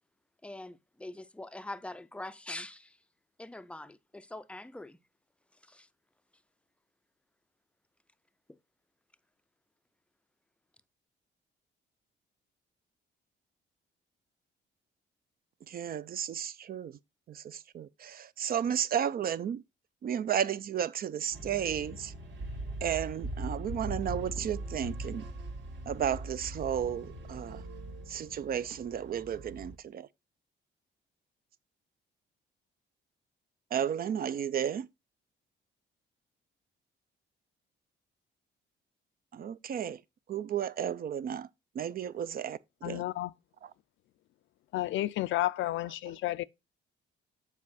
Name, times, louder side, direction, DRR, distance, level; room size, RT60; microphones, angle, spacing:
voice 1, 0.4-3.0 3.4-5.0 5.6-5.9 8.5-8.6, left 2 dB, 5° left, 0.4 m, -43 dB
voice 2, 15.7-17.0 17.3-19.6 20.0-22.1 22.8-25.3 25.9-27.6 28.1-30.1 33.7-34.9 39.3-40.0 40.3-41.5 41.7-42.6 42.8-43.0, right 9 dB, 50° right, 0.4 m, -33 dB
sound 1, 21.3-29.8, right 1 dB, 65° right, 2.0 m, -41 dB
voice 3, 42.8-43.3 44.7-46.4, left 15 dB, 75° left, 0.4 m, -31 dB
7.4 x 4.8 x 4.0 m
cardioid pair, 90°, 20 cm